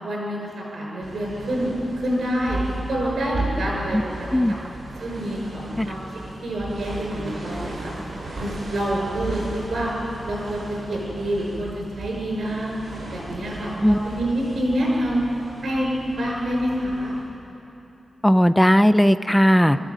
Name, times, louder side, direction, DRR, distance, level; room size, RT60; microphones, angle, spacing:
voice 1, 0.0-2.6 2.9-4.6 5.0-6.0 6.4-7.9 8.4-9.9 10.3-10.6 10.9-12.7 13.1-15.2 15.6-17.1 19.6-19.8, equal, 60° right, -2 dB, 6.4 m, -27 dB
sound 1, 1.0-17.2, right 2 dB, 45° right, 6.7 m, -35 dB
voice 2, 18.2-19.8, equal, 5° left, 12 dB, 0.5 m, -17 dB
24.5 x 13.5 x 9.1 m, 2.9 s
wide cardioid pair, 180°, 0 cm